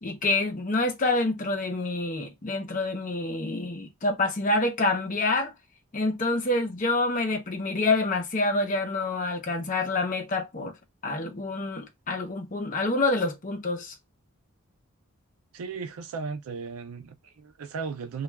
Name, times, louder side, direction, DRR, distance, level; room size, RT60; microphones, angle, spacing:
voice 1, 0.0-5.5 5.9-10.7 11.0-13.9, left 2 dB, 40° left, 0.6 m, -27 dB
voice 2, 15.5-18.2, right 5 dB, 80° right, 0.4 m, -36 dB
2.3 x 2.2 x 3.2 m
head